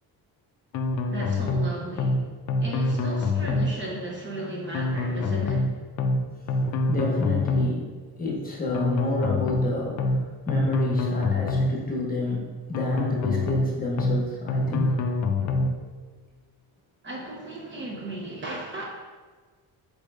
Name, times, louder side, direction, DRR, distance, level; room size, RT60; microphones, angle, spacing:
sound 1, 0.7-1.7 2.0-2.2 2.5-3.7 4.7-5.7 6.0-6.2 6.5-7.7 8.7-9.7 10.0-10.2 10.5-11.7 12.7-13.7 14.0-14.2 14.5-15.7, left 2 dB, 50° left, 0.4 m, -25 dB
voice 1, 1.1-2.2 2.6-5.7 17.0-18.8, right 1 dB, 30° right, -2 dB, 0.7 m, -35 dB
voice 2, 6.9-7.9 8.2-10.1 10.5-12.4 12.7-14.9, left 2 dB, 20° left, -3 dB, 1.0 m, -29 dB
4.0 x 3.7 x 3.4 m, 1.4 s
cardioid pair, 125°, 39 cm